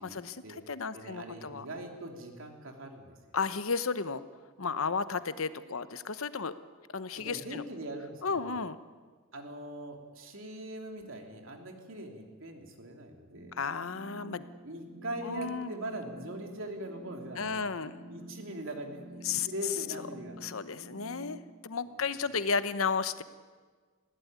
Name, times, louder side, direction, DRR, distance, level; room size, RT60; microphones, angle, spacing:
voice 1, 0.0-1.7 3.3-4.2 4.6-6.5 6.9-7.6 8.2-8.8 13.6-14.4 15.2-15.7 17.4-18.0 19.2-19.5 20.4-23.2, left 5 dB, 70° left, 13 dB, 0.9 m, -33 dB
voice 2, 0.9-3.2 7.2-8.6 9.3-13.5 14.6-17.6 18.1-20.4 21.9-22.5, right 1 dB, 65° right, 3 dB, 3.1 m, -41 dB
sound 1, 13.3-21.4, right 1 dB, 80° right, 5.2 m, -49 dB
20.0 x 16.0 x 9.4 m, 1.5 s
head